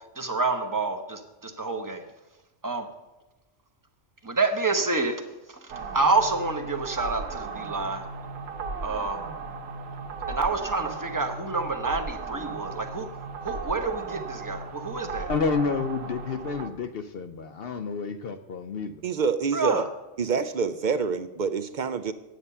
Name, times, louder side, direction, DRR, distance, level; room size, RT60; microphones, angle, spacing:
voice 1, 0.2-2.0 2.6-2.9 4.2-5.2 5.5-8.0 8.8-9.2 10.3-13.1 13.4-15.3 19.5-19.8, right 3 dB, 15° right, 6 dB, 0.9 m, -28 dB
sound 1, 5.7-16.7, right 4 dB, 85° right, 1.2 m, -36 dB
voice 2, 15.3-19.0, left 5 dB, 60° left, 8 dB, 0.7 m, -29 dB
voice 3, 19.0-19.8 20.2-22.1, right 5 dB, 60° right, 12 dB, 0.5 m, -27 dB
9.2 x 8.4 x 5.5 m, 1.1 s
omnidirectional pair, 1.3 m